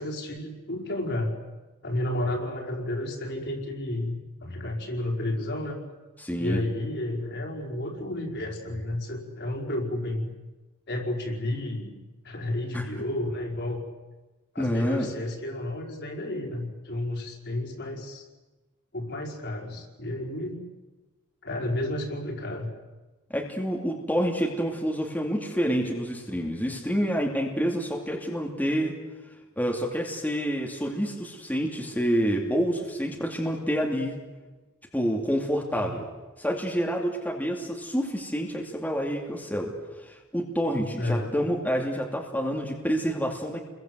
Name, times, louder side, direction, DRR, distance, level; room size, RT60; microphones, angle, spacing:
voice 1, 0.0-1.3 1.8-5.8 6.4-10.3 10.9-12.0 12.2-13.8 14.5-18.2 18.9-20.6 21.4-22.7 35.8-35.9 41.0-41.3, left 1 dB, 55° left, 1 dB, 4.9 m, -31 dB
voice 2, 6.2-6.6 12.7-12.8 14.6-15.1 23.3-28.9 29.6-34.2 34.9-36.1 36.4-43.6, equal, 10° left, 0 dB, 2.7 m, -28 dB
29.5 x 22.0 x 8.0 m, 1.2 s
head